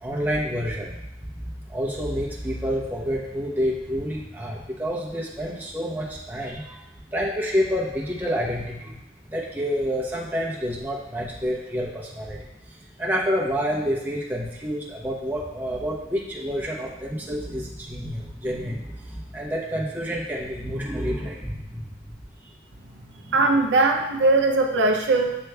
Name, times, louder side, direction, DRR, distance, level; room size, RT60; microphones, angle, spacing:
voice 1, 0.0-0.9 1.7-6.6 7.1-9.0 9.3-12.4 13.0-18.8 19.3-21.8, equal, 10° right, -4 dB, 0.7 m, -28 dB
voice 2, 23.3-25.5, right 2 dB, 75° right, 3 dB, 0.4 m, -20 dB
7.8 x 3.1 x 2.2 m, 0.87 s
head